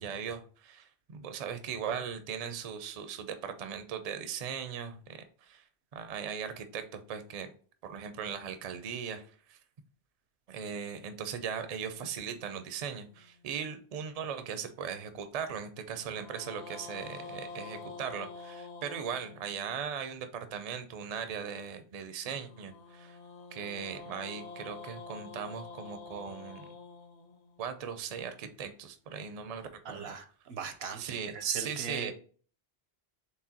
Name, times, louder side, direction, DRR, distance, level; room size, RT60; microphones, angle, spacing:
voice 1, 0.0-5.6 5.9-7.5 7.8-9.6 10.5-23.2 23.5-26.7 27.6-30.1 31.0-32.1, right 7 dB, 50° right, 9 dB, 0.5 m, -39 dB
sound 1, 11.3-13.7 15.9-20.1 22.2-28.4, left 4 dB, 45° left, 0.7 m, -48 dB
voice 2, 29.8-32.1, right 6 dB, 80° right, 8 dB, 0.9 m, -39 dB
4.7 x 3.3 x 2.8 m, 0.43 s
omnidirectional pair, 1.0 m